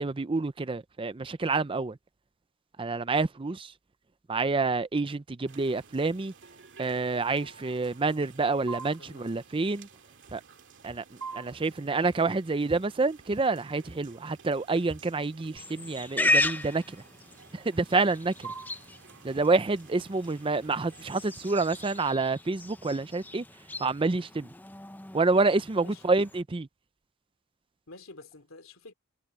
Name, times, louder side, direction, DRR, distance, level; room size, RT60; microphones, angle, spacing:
voice 1, 0.0-2.0 2.8-3.7 4.3-6.3 6.8-9.9 10.3-10.4 10.8-11.0 11.3-17.0 17.5-18.5 19.2-23.4 23.8-24.5 25.1-26.7, right 3 dB, 25° right, 0.5 m, -28 dB
sound 1, 5.5-22.1, right 5 dB, 60° right, 2.4 m, -49 dB
voice 2, 9.0-9.4 25.8-26.1 27.9-28.9, left 2 dB, 75° left, 3.1 m, -49 dB
Walk footsteps, 10.2-10.6 10.8-11.1 11.4-11.7 12.0-12.4 12.6-13.5 13.8-14.2 14.5-14.6 14.8-15.4 15.9-16.0 16.4-16.6, right 1 dB, 45° right, 2.5 m, -52 dB
Livestock farm animals working animals, 15.6-26.4, left 2 dB, 10° left, 0.7 m, -35 dB
head